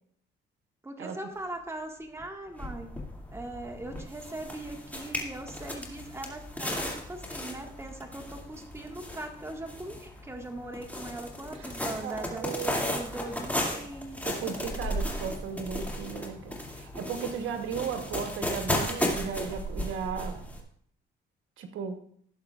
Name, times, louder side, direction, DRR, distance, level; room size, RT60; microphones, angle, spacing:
voice 1, 0.8-2.9 3.3-12.5 12.9-14.2, right 2 dB, 15° right, 3 dB, 1.7 m, -40 dB
sound 1, 2.2-2.3 2.6-20.6, left 1 dB, 10° left, 2.4 m, -35 dB
voice 2, 12.0-13.1 14.2-20.4 21.6-22.0, right 6 dB, 85° right, 6 dB, 1.1 m, -36 dB
16.5 x 7.2 x 2.4 m, 0.64 s
cardioid pair, 90°, 20 cm